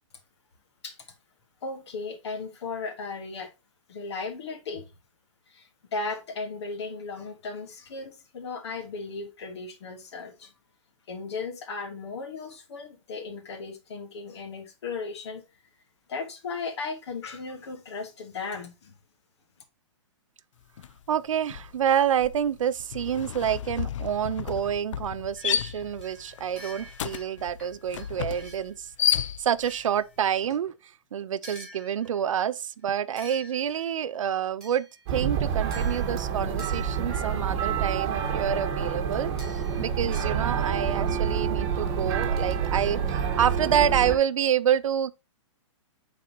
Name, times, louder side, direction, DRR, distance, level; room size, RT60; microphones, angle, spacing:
voice 1, 1.6-3.5 3.9-4.9 5.5-10.5 11.1-15.4 16.1-18.9, left 4 dB, 60° left, 1.4 m, -36 dB
sound 1, 20.8-21.1 21.3-29.8, left 10 dB, 75° left, 0.4 m, -32 dB
voice 2, 21.1-45.1, right 9 dB, 80° right, 0.6 m, -28 dB
sound 2, 25.4-28.8 29.6-30.7 31.4-32.4 33.2-34.0 34.6-35.2 35.7-37.4 39.4-40.4, right 1 dB, 5° left, 2.6 m, -49 dB
sound 3, 35.1-44.1, right 7 dB, 25° right, 1.3 m, -28 dB
8.5 x 4.1 x 2.8 m
hypercardioid pair, 160°, 16 cm